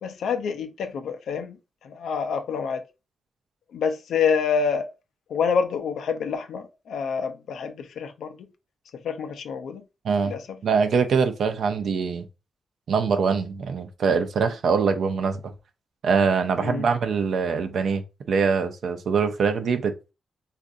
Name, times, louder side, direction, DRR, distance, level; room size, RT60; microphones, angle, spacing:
voice 1, 0.0-1.5 1.8-2.8 3.7-4.9 5.3-8.3 9.0-9.8 10.3-10.4 16.6-16.8, left 6 dB, 85° left, 0.5 m, -27 dB
voice 2, 10.6-12.2 12.9-15.5 16.0-18.0 18.3-20.1, right 5 dB, 75° right, 0.5 m, -23 dB
3.6 x 2.5 x 2.5 m
cardioid pair, 70°, 0 cm